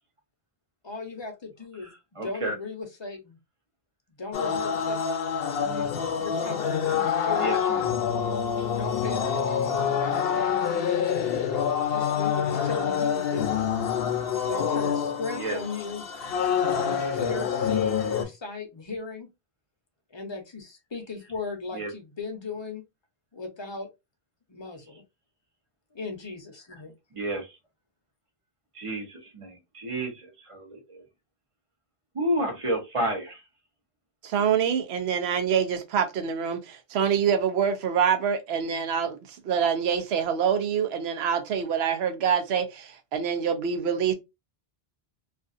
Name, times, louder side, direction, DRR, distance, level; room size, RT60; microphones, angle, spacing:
voice 1, 0.8-1.9 2.2-3.4 4.2-5.0 6.1-7.6 8.8-11.0 11.9-13.6 14.4-16.0 16.8-19.3 20.1-22.8 23.3-23.9 24.5-25.0 25.9-26.9, left 4 dB, 35° left, 0.5 m, -36 dB
voice 2, 2.2-2.5 5.6-5.9 7.4-7.9 15.4-15.6 21.7-21.9 27.1-27.5 28.7-31.0 32.1-33.4, right 1 dB, 35° right, 0.8 m, -31 dB
sound 1, 4.3-18.2, left 7 dB, 70° left, 0.7 m, -26 dB
voice 3, 34.2-39.2 39.4-44.1, right 7 dB, 90° right, 0.8 m, -25 dB
2.4 x 2.4 x 2.4 m
omnidirectional pair, 1.0 m